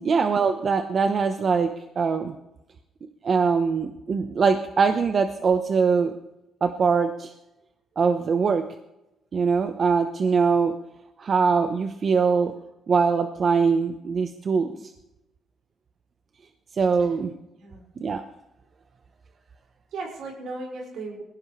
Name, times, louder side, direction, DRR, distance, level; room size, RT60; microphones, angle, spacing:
voice 1, 0.0-1.7 2.0-2.3 3.2-6.2 6.6-7.3 8.0-8.7 9.3-10.7 11.2-12.5 12.9-14.9 16.7-17.3 18.0-18.2, right 5 dB, 45° right, 7 dB, 1.0 m, -22 dB
voice 2, 17.5-17.9 19.9-21.2, right 3 dB, 80° right, -1 dB, 5.5 m, -36 dB
21.0 x 17.0 x 3.3 m, 0.94 s
cardioid pair, 90°, 0 cm